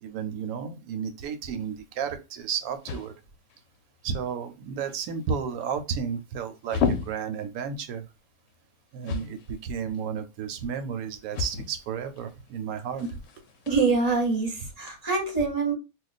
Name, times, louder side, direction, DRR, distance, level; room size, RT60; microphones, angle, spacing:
voice 1, 0.0-3.1 4.0-8.1 8.9-13.1, right 7 dB, 85° right, 1.0 m, -32 dB
sound 1, 1.5-14.9, left 6 dB, 70° left, 0.8 m, -37 dB
voice 2, 13.7-15.7, right 4 dB, 35° right, 0.7 m, -25 dB
2.4 x 2.2 x 3.9 m
omnidirectional pair, 1.5 m